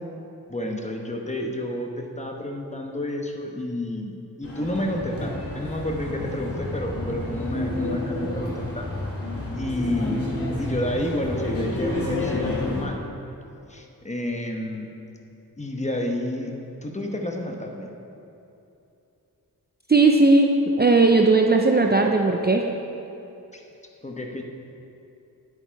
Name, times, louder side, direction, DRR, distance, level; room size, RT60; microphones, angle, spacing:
voice 1, 0.5-8.9 9.5-13.0 13.7-14.9 15.6-18.0 23.5-23.6 24.0-24.4, left 1 dB, 20° left, 2 dB, 1.0 m, -30 dB
sound 1, 4.4-12.8, left 1 dB, 40° left, 2.6 m, -29 dB
voice 2, 19.9-22.7, right 3 dB, 25° right, 2 dB, 0.6 m, -17 dB
9.9 x 8.5 x 4.7 m, 2.8 s
wide cardioid pair, 85°, 36 cm